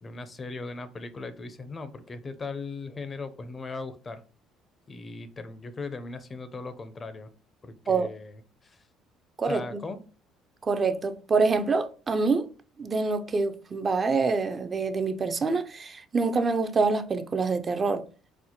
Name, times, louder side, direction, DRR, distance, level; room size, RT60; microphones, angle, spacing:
voice 1, 0.0-4.2 4.9-7.3 7.6-8.8 9.4-10.0, left 3 dB, 30° left, 0.4 m, -38 dB
voice 2, 9.4-9.8 10.6-12.5 12.8-18.0, right 4 dB, 35° right, 0.3 m, -26 dB
4.2 x 2.1 x 2.7 m
supercardioid pair, 90°, 0 cm